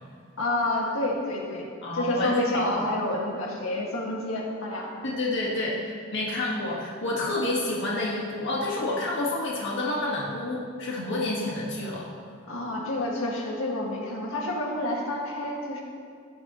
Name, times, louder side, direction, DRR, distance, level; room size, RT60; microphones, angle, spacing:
voice 1, 0.4-1.7 1.9-5.0 12.5-15.8, left 1 dB, 80° left, -2 dB, 1.9 m, -28 dB
voice 2, 1.8-2.6 5.0-12.1, left 2 dB, 60° left, -5 dB, 1.6 m, -29 dB
16.5 x 10.0 x 3.0 m, 2.2 s
head